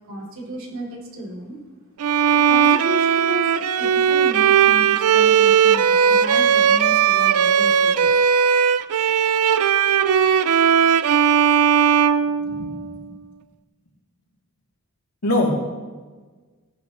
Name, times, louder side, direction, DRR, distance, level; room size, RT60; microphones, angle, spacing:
voice 1, 0.1-1.6 2.3-8.1, right 1 dB, 60° right, -3 dB, 3.0 m, -33 dB
Bowed string instrument, 2.0-13.0, right 8 dB, 85° right, 0.4 m, -17 dB
voice 2, 12.2-13.1 15.2-15.5, left 1 dB, 85° left, -3 dB, 3.0 m, -25 dB
18.0 x 10.5 x 3.1 m, 1.4 s
head